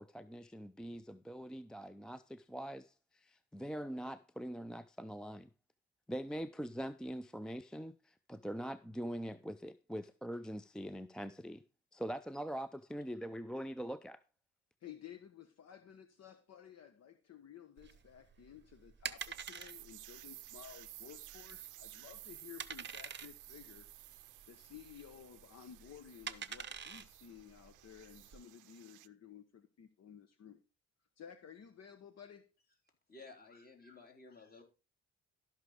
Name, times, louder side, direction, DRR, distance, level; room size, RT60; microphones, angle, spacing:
voice 1, 0.0-5.5 6.1-11.6 11.9-14.2, equal, 5° left, 0.4 m, -43 dB
voice 2, 14.8-23.9 24.5-30.6 31.2-32.5, left 9 dB, 55° left, 1.1 m, -54 dB
sound 1, 17.8-28.4, right 7 dB, 35° right, 0.8 m, -47 dB
sound 2, 19.2-29.1, right 17 dB, 80° right, 0.6 m, -55 dB
voice 3, 33.1-34.6, left 3 dB, 30° left, 3.8 m, -55 dB
13.0 x 5.9 x 4.9 m
cardioid pair, 90°, 30 cm